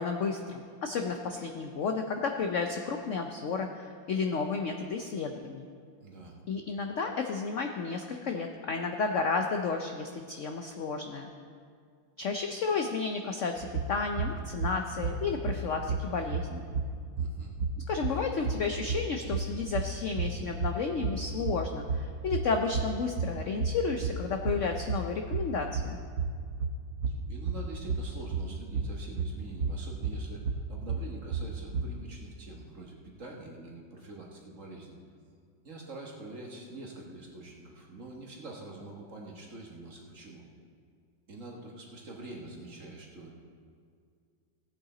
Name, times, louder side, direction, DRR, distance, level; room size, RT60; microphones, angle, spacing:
voice 1, 0.0-5.6 6.5-11.3 12.2-16.7 17.9-26.0, left 4 dB, 80° left, 4 dB, 0.6 m, -32 dB
voice 2, 6.0-6.4 17.2-17.5 27.1-35.0 35.6-40.4 41.3-43.3, right 2 dB, 45° right, -1 dB, 1.7 m, -45 dB
sound 1, 13.6-32.1, right 4 dB, 65° right, 1.0 m, -34 dB
17.0 x 8.8 x 3.8 m, 2.2 s
omnidirectional pair, 2.1 m